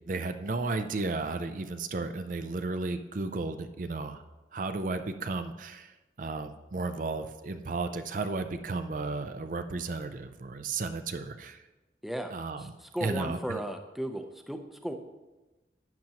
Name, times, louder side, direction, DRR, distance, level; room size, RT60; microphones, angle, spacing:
voice 1, 0.1-4.2 4.5-5.9 6.2-11.6 12.3-12.6 13.0-13.6, right 3 dB, 50° right, 9 dB, 0.5 m, -33 dB
voice 2, 12.0-14.9, equal, ahead, 5 dB, 0.6 m, -36 dB
12.0 x 8.9 x 2.9 m, 1.1 s
head